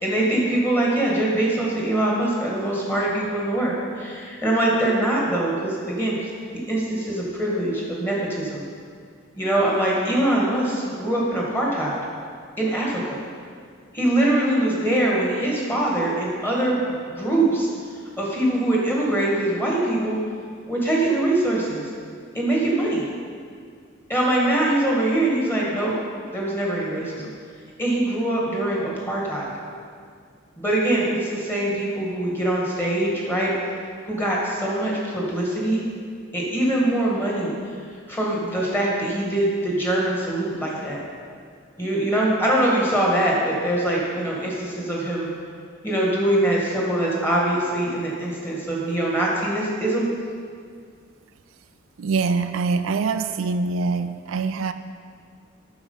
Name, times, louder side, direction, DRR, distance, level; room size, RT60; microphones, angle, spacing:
voice 1, 0.0-6.3 6.7-8.6 9.3-12.0 12.6-13.2 13.9-17.7 18.2-20.2 20.7-21.8 22.3-23.1 24.1-25.9 26.3-27.3 27.8-29.5 30.6-33.5 34.1-35.8 36.3-37.5 38.1-41.0 41.8-45.3 45.8-50.1, right 1 dB, 10° left, 1.8 m, -23 dB
voice 2, 52.0-54.7, right 4 dB, 80° right, 0.4 m, -24 dB
9.5 x 6.3 x 5.5 m
head